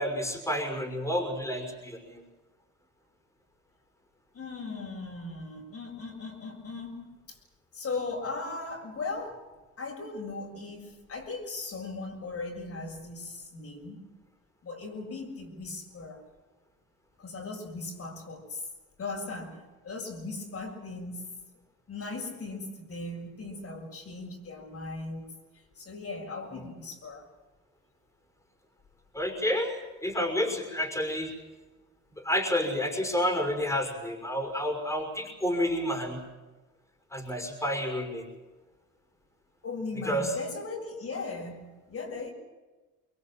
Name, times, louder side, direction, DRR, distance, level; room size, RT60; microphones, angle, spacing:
voice 1, 0.0-2.2 29.1-31.3 32.2-36.2 37.1-38.2 40.1-40.3, left 1 dB, 10° left, 4 dB, 5.9 m, -30 dB
voice 2, 4.3-7.4 7.7-9.5 9.8-14.1 14.6-16.2 17.2-18.7 19.0-21.4 21.9-27.3 39.6-42.3, left 3 dB, 50° left, 1 dB, 7.1 m, -38 dB
25.0 x 22.0 x 7.7 m, 1.2 s
cardioid pair, 90°, 30 cm